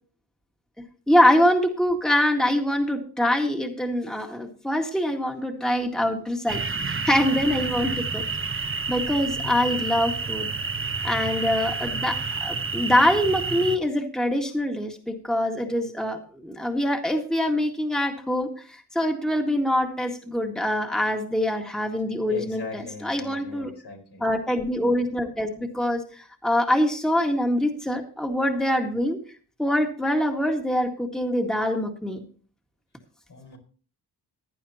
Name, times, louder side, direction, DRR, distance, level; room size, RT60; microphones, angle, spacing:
voice 1, 1.1-8.2 8.5-8.6 8.9-10.5 11.0-23.7 24.2-29.2 29.6-32.2, left 1 dB, ahead, 3 dB, 1.9 m, -24 dB
voice 2, 5.8-6.2 6.8-6.9 7.7-8.0 9.4-9.8 22.3-24.2 33.3-33.6, left 4 dB, 70° left, 1 dB, 4.5 m, -40 dB
sound 1, 6.5-13.8, right 4 dB, 30° right, 1.0 m, -29 dB
16.0 x 10.5 x 2.9 m, 0.41 s
cardioid pair, 65°, 41 cm